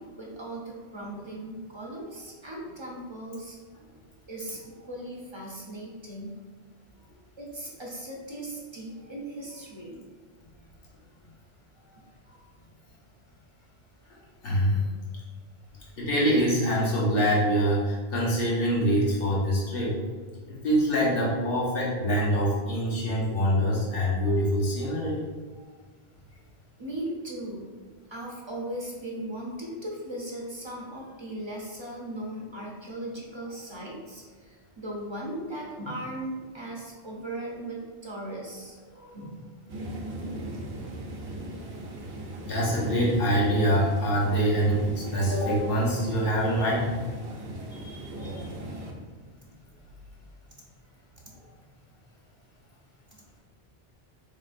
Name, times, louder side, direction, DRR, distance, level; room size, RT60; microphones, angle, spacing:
voice 1, 0.0-3.6 4.3-6.4 7.4-10.0 11.9-12.5 25.6-25.7 26.8-27.7 28.1-38.8 39.1-39.6 48.2-48.5 51.2-51.5 51.9-52.0 53.1-53.2, right 1 dB, 30° right, -2 dB, 0.6 m, -38 dB
voice 2, 14.4-14.8 16.0-20.0 20.5-25.2 38.9-39.2 42.5-46.9 47.7-48.5, equal, 60° left, -6 dB, 1.3 m, -25 dB
sound 1, 39.7-48.9, right 1 dB, 75° right, 0.9 m, -38 dB
4.1 x 3.8 x 2.5 m, 1.5 s
omnidirectional pair, 1.1 m